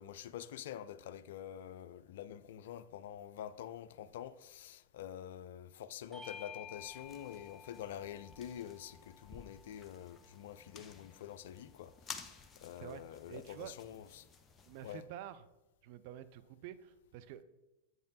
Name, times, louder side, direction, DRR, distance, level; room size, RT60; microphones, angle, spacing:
voice 1, 0.0-14.3 14.8-15.0, left 10 dB, 55° left, 0.3 m, -47 dB
Bell / Doorbell, 6.1-11.0, left 6 dB, 5° right, 0.9 m, -54 dB
sound 1, 6.7-14.9, left 5 dB, 20° left, 0.6 m, -54 dB
voice 2, 12.8-13.7 14.7-15.5 15.8-17.4, right 11 dB, 45° right, 0.4 m, -49 dB
7.7 x 5.2 x 3.9 m
figure-of-eight pair, 90°, 0 cm